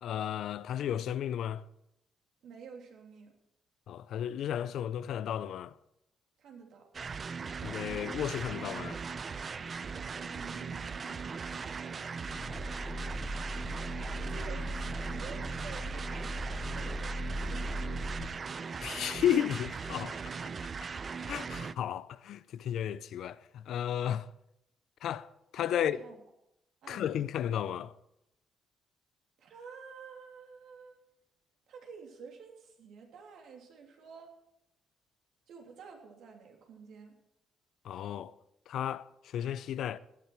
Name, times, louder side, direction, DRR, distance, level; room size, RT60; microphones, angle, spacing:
voice 1, 0.0-1.6 3.9-5.7 7.6-9.0 18.8-20.2 21.3-24.3 25.0-25.3 25.5-26.0 26.9-27.9 37.9-38.3 38.7-39.0 39.3-40.0, left 10 dB, 75° left, 0.5 m, -33 dB
voice 2, 2.4-3.3 6.4-6.9 10.1-11.2 14.3-17.9 25.7-26.2 26.8-27.2 29.4-31.0 31.7-34.3 35.5-37.1, right 5 dB, 75° right, 3.1 m, -50 dB
sound 1, 6.9-21.7, right 5 dB, 40° right, 0.5 m, -39 dB
sound 2, 12.3-18.2, equal, 35° left, 1.3 m, -38 dB
17.5 x 10.5 x 4.6 m
cardioid pair, 90°, 0 cm